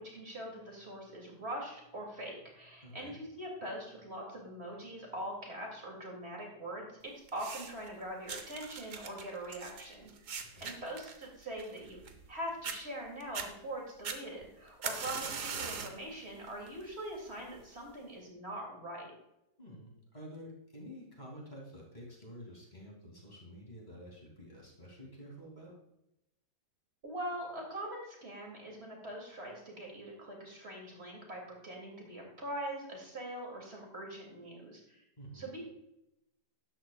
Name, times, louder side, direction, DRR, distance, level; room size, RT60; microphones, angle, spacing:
voice 1, 0.0-12.0 12.3-19.2 27.0-35.0 35.3-35.6, right 1 dB, 35° right, -1 dB, 3.1 m, -43 dB
voice 2, 2.8-3.1 10.5-10.7 19.6-25.7 35.2-35.5, equal, 25° left, -3 dB, 3.1 m, -50 dB
sound 1, 7.3-7.9 8.3-12.3 12.6-12.8 13.2-13.5 14.0-16.0 16.5-16.8 17.6-17.7, right 6 dB, 55° right, 1.2 m, -41 dB
13.0 x 10.5 x 2.5 m, 0.86 s
omnidirectional pair, 1.8 m